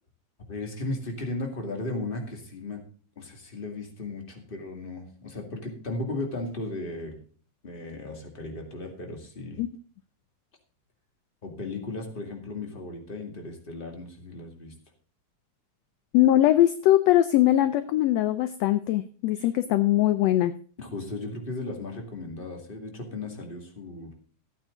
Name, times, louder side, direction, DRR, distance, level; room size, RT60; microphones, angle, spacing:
voice 1, 0.5-2.8 3.2-7.2 7.6-9.6 11.4-14.7 19.4-19.5 20.8-24.1, left 2 dB, 20° left, 3 dB, 2.1 m, -36 dB
voice 2, 16.1-20.5, left 13 dB, 75° left, 12 dB, 1.6 m, -21 dB
14.5 x 8.8 x 3.8 m, 0.41 s
omnidirectional pair, 3.4 m